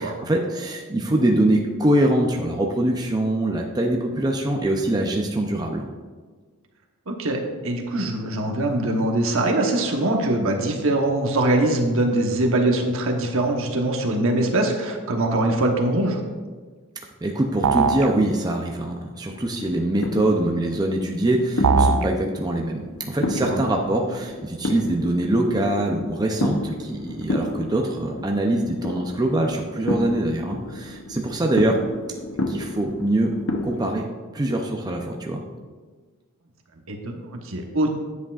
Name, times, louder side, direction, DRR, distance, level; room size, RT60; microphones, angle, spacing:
voice 1, 0.0-5.9 17.2-31.8 32.5-33.3 33.6-34.1 34.3-35.4, right 1 dB, 20° right, 1 dB, 0.5 m, -23 dB
voice 2, 7.1-16.2 23.4-23.6 36.9-37.9, right 1 dB, 65° right, 2 dB, 1.0 m, -22 dB
sound 1, 17.6-18.1 21.6-22.1, right 4 dB, 85° right, 0.5 m, -19 dB
sound 2, 19.3-33.8, left 1 dB, 65° left, 0.7 m, -31 dB
9.6 x 8.0 x 2.4 m, 1.4 s
head